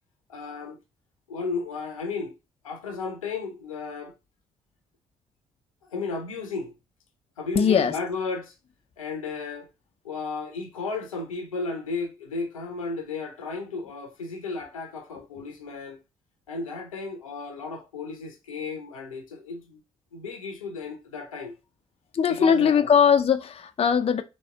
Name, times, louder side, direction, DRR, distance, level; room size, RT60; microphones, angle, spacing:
voice 1, 0.3-0.8 1.3-2.3 2.6-4.1 5.8-6.7 7.4-8.5 9.0-9.7 10.0-16.0 16.5-19.8 20.1-21.5 22.3-22.9, left 4 dB, 85° left, 0.8 m, -34 dB
voice 2, 7.6-7.9 22.1-24.2, left 7 dB, 35° left, 0.6 m, -20 dB
4.3 x 3.2 x 3.2 m
figure-of-eight pair, 40°, 17 cm